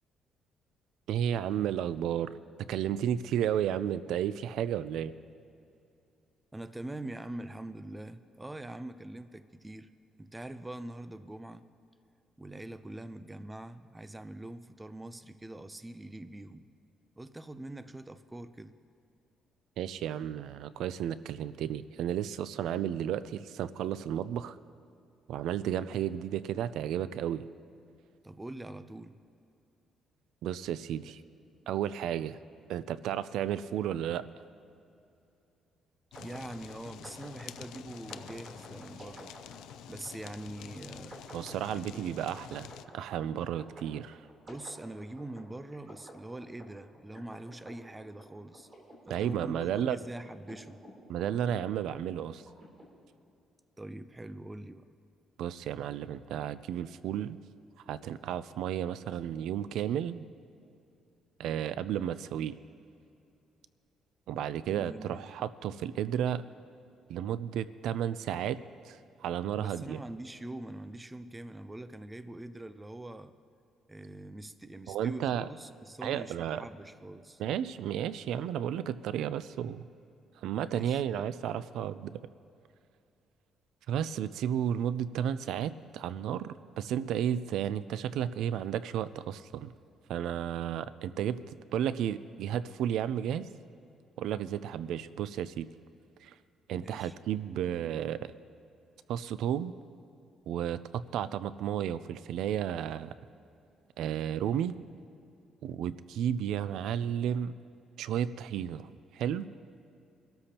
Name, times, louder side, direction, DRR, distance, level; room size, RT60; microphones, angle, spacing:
voice 1, 1.1-2.3 2.7-5.1 19.8-24.6 25.3-27.4 30.4-31.2 31.7-32.4 32.7-34.3 41.3-42.7 42.9-44.2 49.1-50.0 51.1-52.4 55.4-57.4 57.9-60.2 61.4-62.5 64.3-66.4 67.1-70.0 74.9-75.5 76.0-76.6 77.4-79.8 80.4-82.1 83.9-89.7 90.1-93.5 94.2-95.7 96.2-96.3 96.7-98.3 99.1-99.7 100.5-103.1 104.0-104.7 105.6-107.6 108.0-109.5, right 10 dB, 75° right, 15 dB, 0.4 m, -33 dB
voice 2, 6.5-9.9 10.2-11.7 12.4-16.7 17.2-18.8 28.2-29.1 36.1-39.3 39.9-41.3 41.7-42.1 44.5-48.7 49.1-50.8 53.8-54.9 64.7-65.4 69.6-73.3 73.9-77.4 80.6-81.6 96.7-97.2, right 1 dB, 10° right, 11 dB, 0.4 m, -44 dB
Fire, 36.1-42.9, left 11 dB, 90° left, 0.4 m, -48 dB
sound 1, 36.1-52.8, right 1 dB, 30° right, 3.3 m, -52 dB
24.0 x 13.0 x 2.9 m, 2.6 s
cardioid pair, 160°, 0 cm